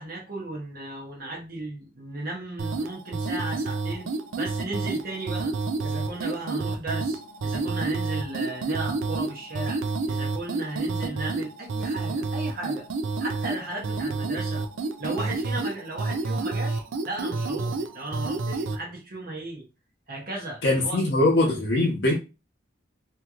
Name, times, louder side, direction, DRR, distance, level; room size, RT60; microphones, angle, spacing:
voice 1, 0.0-4.1 4.4-5.6 5.8-12.9 13.2-14.7 15.0-19.7 20.1-21.0, right 2 dB, 45° right, 0.9 m, -35 dB
sound 1, 2.6-18.8, right 3 dB, 75° right, 0.4 m, -29 dB
voice 2, 20.6-22.1, left 2 dB, 60° left, 0.9 m, -22 dB
2.9 x 2.9 x 2.4 m
head